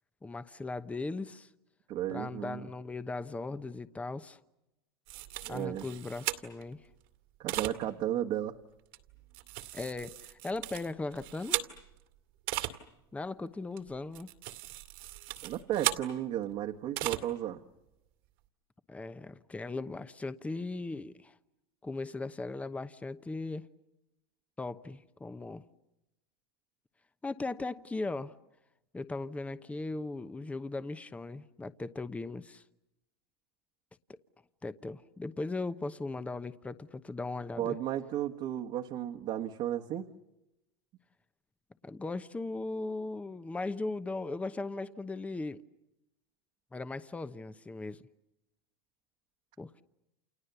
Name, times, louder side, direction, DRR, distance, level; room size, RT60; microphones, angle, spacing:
voice 1, 0.2-1.5 2.1-4.4 5.5-6.9 9.7-11.6 13.1-14.3 18.9-21.3 21.8-23.7 24.6-25.6 27.2-28.4 28.9-32.6 34.1-34.2 34.6-37.8 41.8-45.6 46.7-48.0 49.6-49.8, left 3 dB, 10° left, 0.9 m, -38 dB
voice 2, 1.9-2.7 5.4-5.9 7.4-8.6 15.4-17.6 37.6-40.1, right 11 dB, 50° right, 1.5 m, -34 dB
sound 1, 5.1-6.7 7.5-7.7 8.9-12.0 12.5-12.7 13.8-16.0 17.0-17.2, right 17 dB, 65° right, 2.3 m, -36 dB
29.5 x 28.5 x 7.0 m
supercardioid pair, 105°, 12 cm